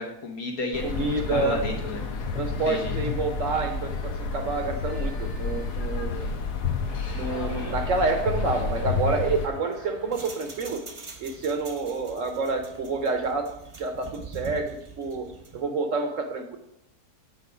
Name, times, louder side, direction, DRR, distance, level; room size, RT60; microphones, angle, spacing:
voice 1, 0.0-2.0 2.5-2.9, left 3 dB, 65° left, 1 dB, 1.6 m, -32 dB
sound 1, 0.7-9.5, left 4 dB, 90° left, 1.4 m, -30 dB
voice 2, 0.8-1.6 2.3-6.3 7.2-10.8 11.2-13.5 13.8-14.7 15.0-15.3 15.5-16.6, right 3 dB, 60° right, 5 dB, 1.0 m, -28 dB
Chuckle chortle, 6.8-10.5, right 2 dB, 90° right, 1.8 m, -44 dB
sound 2, 9.5-15.7, right 4 dB, 35° right, 0.5 m, -44 dB
8.3 x 4.1 x 4.9 m, 0.78 s
omnidirectional pair, 1.7 m